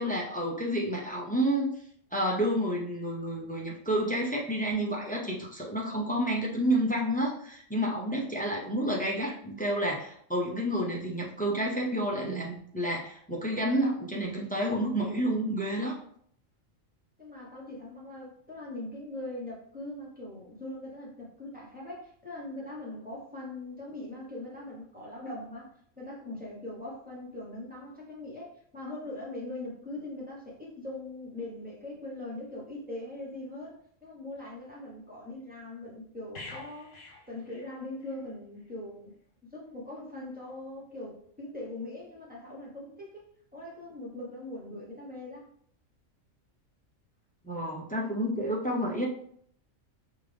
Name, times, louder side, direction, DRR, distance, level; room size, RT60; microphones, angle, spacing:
voice 1, 0.0-1.7 2.1-16.0 47.4-49.1, equal, 15° left, -3 dB, 0.3 m, -30 dB
voice 2, 17.2-39.1 39.5-43.3 43.5-45.5, left 2 dB, 5° right, -5 dB, 1.0 m, -41 dB
sound 1, 36.3-38.2 38.6-38.8, left 2 dB, 75° left, 1.5 m, -47 dB
5.4 x 2.5 x 3.4 m, 0.64 s
omnidirectional pair, 1.4 m